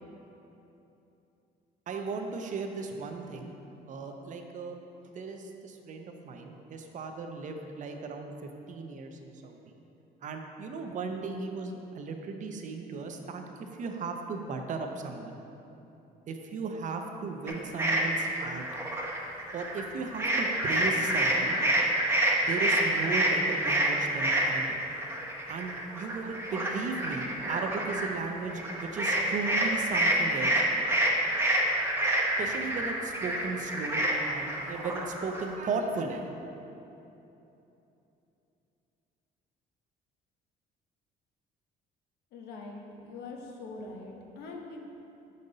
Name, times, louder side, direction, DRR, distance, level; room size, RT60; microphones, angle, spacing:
voice 1, 1.9-3.5 3.9-4.8 5.1-8.3 8.7-9.7 10.2-15.4 16.3-18.7 19.5-21.6 22.5-24.7 25.5-30.6 32.4-36.3, right 4 dB, 50° right, 4 dB, 0.6 m, -36 dB
sound 1, 17.5-19.9 20.1-35.5, right 1 dB, 15° right, 0.8 m, -28 dB
voice 2, 42.3-44.8, left 3 dB, 80° left, 1 dB, 0.8 m, -43 dB
5.4 x 5.2 x 3.9 m, 2.9 s
cardioid pair, 110°, 17 cm